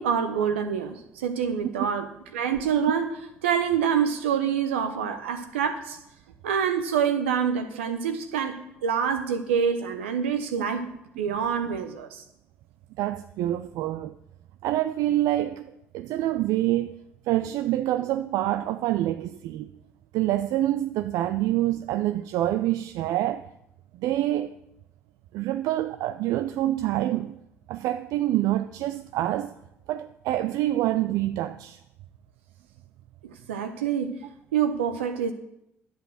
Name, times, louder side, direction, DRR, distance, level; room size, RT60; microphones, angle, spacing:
voice 1, 0.0-2.1 2.3-3.1 3.4-6.0 6.4-10.9 11.2-12.2 33.2-34.2 34.5-35.3, right 7 dB, 80° right, 1.0 m, -26 dB
voice 2, 13.0-14.1 14.6-17.0 17.3-19.7 20.1-23.5 23.9-24.6 25.3-27.4 27.7-29.5 29.9-31.8, right 14 dB, 65° right, 0.5 m, -26 dB
11.0 x 8.0 x 6.6 m
hypercardioid pair, 50°, 6 cm